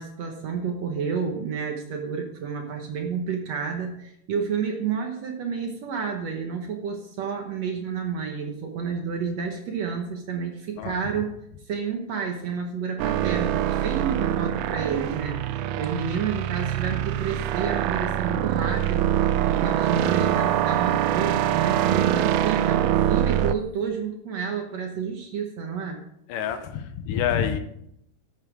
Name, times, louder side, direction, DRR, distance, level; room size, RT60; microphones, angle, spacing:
voice 1, 0.0-11.3 11.7-26.0, right 6 dB, 65° right, 3 dB, 1.8 m, -30 dB
sound 1, 13.0-23.6, right 11 dB, 80° right, 1.8 m, -24 dB
voice 2, 26.3-27.6, left 8 dB, 75° left, 9 dB, 2.2 m, -27 dB
12.0 x 8.3 x 4.8 m, 0.77 s
omnidirectional pair, 4.1 m